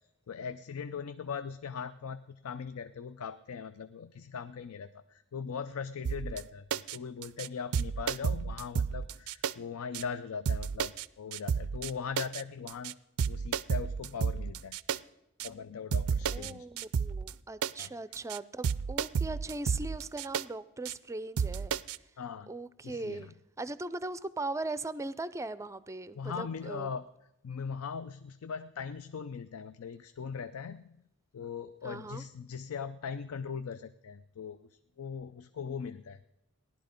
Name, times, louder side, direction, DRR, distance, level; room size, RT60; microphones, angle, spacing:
voice 1, 0.3-12.9 13.3-14.8 15.4-16.7 17.8-17.9 22.2-22.5 22.8-23.3 26.2-27.0 27.4-31.0 31.3-34.6 35.0-36.2, left 6 dB, 75° left, 12 dB, 0.5 m, -40 dB
sound 1, 6.0-6.4 6.7-7.0 7.2-7.5 7.7-9.5 9.9-10.0 10.4-11.0 11.3-11.9 12.2-12.4 12.7-12.9 13.2-15.0 15.4-15.5 15.9-16.5 16.8-17.3 17.6-17.9 18.1-18.4 18.6-20.4 20.8-20.9 21.4-22.0, right 6 dB, 85° right, 0.4 m, -31 dB
voice 2, 16.3-21.7 22.5-23.3 23.6-26.9 31.8-32.2, right 2 dB, 15° right, 16 dB, 0.4 m, -39 dB
16.0 x 11.5 x 5.1 m, 0.86 s
head